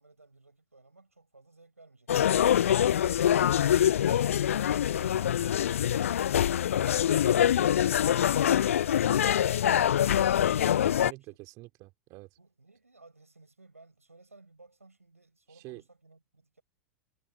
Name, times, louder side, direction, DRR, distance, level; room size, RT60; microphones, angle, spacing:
voice 1, 0.0-4.4 12.4-16.6, right 3 dB, 90° right, 7.9 m, -58 dB
sound 1, 2.1-11.1, left 10 dB, 70° left, 0.5 m, -24 dB
voice 2, 10.8-12.3 15.5-15.8, right 22 dB, 45° right, 3.7 m, -47 dB
figure-of-eight pair, 90°, 8 cm